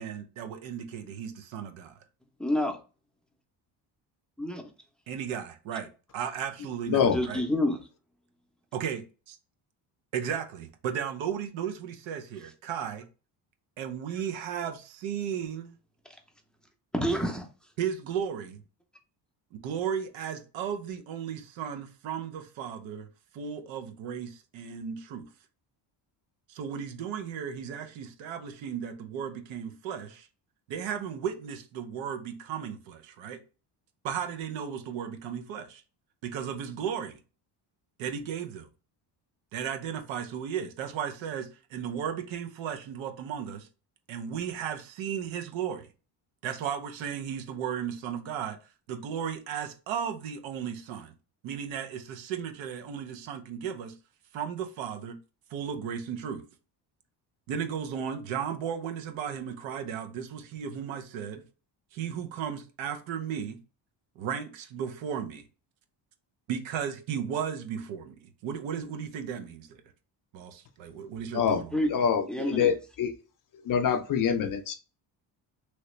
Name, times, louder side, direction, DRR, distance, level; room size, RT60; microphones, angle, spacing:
voice 1, 0.0-1.9 5.1-7.4 8.7-9.4 10.1-13.1 13.8-15.7 17.8-18.6 19.6-23.1 23.3-25.3 26.5-30.3 30.7-33.4 34.0-35.8 36.2-37.2 38.0-38.7 39.5-43.7 44.1-45.9 46.4-48.6 48.9-51.1 51.4-53.9 54.3-55.2 55.5-56.5 57.5-61.4 61.9-63.6 64.2-65.4 66.5-69.8 70.3-71.8, right 8 dB, 80° right, 0.7 m, -35 dB
voice 2, 2.4-2.8 4.4-4.6 7.0-7.8 16.9-17.5 71.7-71.9 72.3-72.8, left 1 dB, ahead, 0.6 m, -28 dB
voice 3, 6.9-7.2 71.3-71.6 71.9-73.1 73.6-74.7, left 7 dB, 45° left, 0.5 m, -25 dB
3.1 x 2.8 x 3.1 m
cardioid pair, 115°, 45 cm